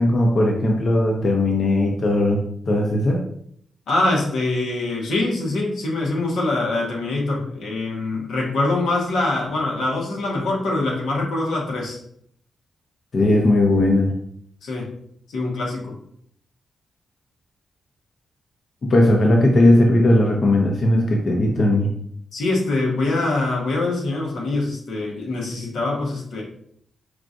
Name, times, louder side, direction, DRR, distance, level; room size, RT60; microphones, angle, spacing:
voice 1, 0.0-2.4 2.7-3.2 13.1-14.1 18.8-21.9, left 1 dB, 55° left, 0 dB, 0.6 m, -17 dB
voice 2, 3.9-12.0 14.6-14.9 15.3-16.0 22.3-26.4, left 2 dB, 85° left, -2 dB, 0.9 m, -24 dB
4.6 x 2.5 x 2.5 m, 0.67 s
cardioid pair, 70°, 0 cm